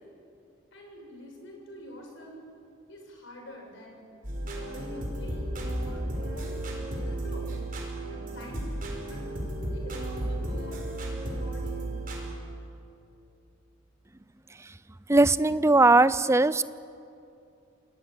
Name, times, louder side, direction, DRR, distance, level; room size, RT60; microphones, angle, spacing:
voice 1, 0.7-2.4 2.9-4.0 4.6-7.6 8.1-9.2 9.7-10.9 11.2-11.9, left 1 dB, 65° left, 1 dB, 6.6 m, -46 dB
sound 1, 4.2-12.3, right 1 dB, 40° right, 5.5 m, -33 dB
voice 2, 15.1-16.7, right 2 dB, 15° right, 16 dB, 0.5 m, -20 dB
28.0 x 18.5 x 8.9 m, 2.6 s
head